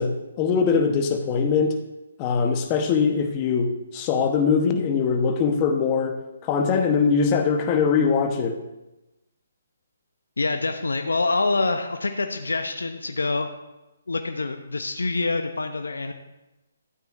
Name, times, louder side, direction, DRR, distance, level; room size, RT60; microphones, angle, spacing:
voice 1, 0.0-1.8 2.2-8.6, left 5 dB, 25° left, 4 dB, 1.1 m, -22 dB
voice 2, 10.4-13.5 14.1-16.1, left 3 dB, 80° left, 6 dB, 0.7 m, -26 dB
12.5 x 9.0 x 2.6 m, 1.0 s
figure-of-eight pair, 145°, 0 cm